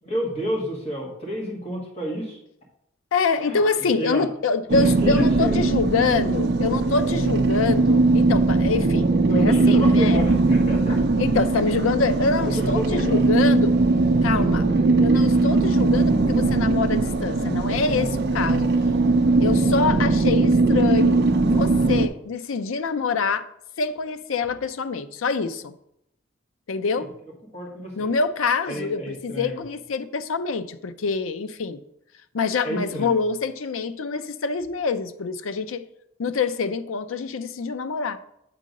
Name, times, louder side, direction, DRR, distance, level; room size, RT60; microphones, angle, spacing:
voice 1, 0.0-2.4 3.4-3.6 4.0-4.2 4.8-5.6 9.3-11.0 12.5-13.2 14.3-15.1 27.5-28.1 28.7-29.6 32.6-33.1, equal, 30° left, 2.0 m, -30 dB
voice 2, 3.1-10.3 11.2-13.8 14.2-14.7 15.0-18.7 19.4-23.5 23.8-25.7 26.7-27.1 28.0-31.8 32.3-35.8 36.2-38.2, left 4 dB, 90° left, 0.5 m, -25 dB
sound 1, 4.7-22.1, right 3 dB, 55° right, 0.5 m, -20 dB
7.7 x 3.8 x 5.2 m
head